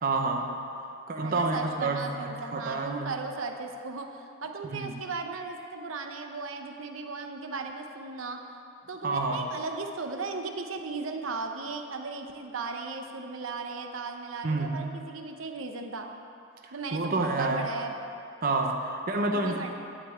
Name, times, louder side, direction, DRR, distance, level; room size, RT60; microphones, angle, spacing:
voice 1, 0.0-0.6 1.1-3.2 4.6-5.0 9.0-9.5 14.4-15.0 16.9-17.7 18.4-19.7, right 3 dB, 45° right, 2 dB, 0.8 m, -29 dB
voice 2, 1.2-8.4 8.9-16.1 16.7-17.9 19.3-19.7, right 4 dB, 80° right, 4 dB, 0.8 m, -36 dB
12.0 x 5.2 x 8.4 m, 2.6 s
head